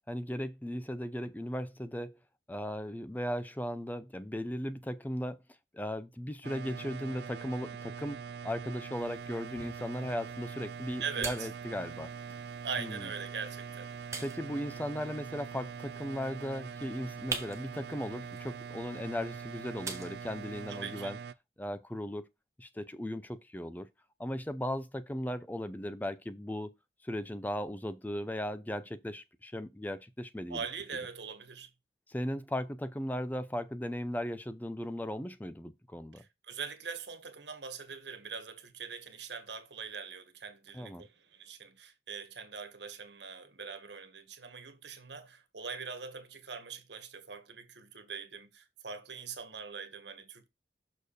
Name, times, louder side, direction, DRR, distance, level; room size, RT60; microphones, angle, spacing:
voice 1, 0.1-2.2 2.5-5.4 5.7-8.2 8.4-12.1 12.8-13.1 14.2-21.2 21.6-22.3 22.6-23.9 24.2-26.7 27.0-30.6 32.1-36.2 40.7-41.1, equal, 10° left, 0.4 m, -37 dB
sound 1, 6.4-21.3, right 6 dB, 70° right, 0.4 m, -43 dB
sound 2, 9.0-21.0, right 4 dB, 15° right, 1.1 m, -47 dB
voice 2, 11.0-11.5 12.6-13.9 20.7-21.2 30.5-31.7 36.1-50.5, right 5 dB, 85° right, 1.6 m, -42 dB
6.6 x 4.4 x 5.0 m
head